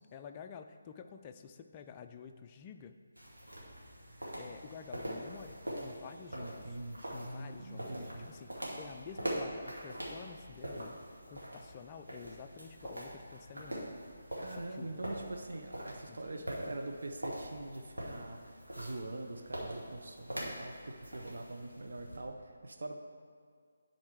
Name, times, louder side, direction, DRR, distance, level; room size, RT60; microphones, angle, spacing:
voice 1, 0.0-3.0 4.4-6.8 7.1-11.0 11.3-14.0 14.5-15.1 16.1-16.5, left 7 dB, 20° left, 6 dB, 0.4 m, -50 dB
sound 1, 3.2-22.2, right 1 dB, 80° right, 2.0 m, -43 dB
voice 2, 6.3-8.3 14.4-23.0, right 2 dB, 60° right, 3 dB, 0.8 m, -44 dB
10.5 x 4.3 x 4.7 m, 2.1 s
figure-of-eight pair, 150°, 0 cm